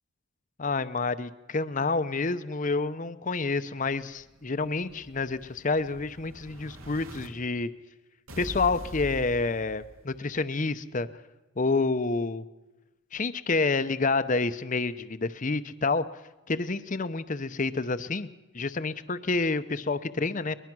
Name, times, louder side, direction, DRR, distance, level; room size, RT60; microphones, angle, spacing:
voice 1, 0.6-7.7 8.4-11.1 11.6-12.4 13.1-16.1 16.5-18.3 18.5-20.6, left 3 dB, 35° left, 13 dB, 0.7 m, -28 dB
Explosion, 3.9-7.3 8.3-10.3, equal, 75° right, 3.1 m, -43 dB
22.5 x 21.0 x 6.2 m, 1.1 s
head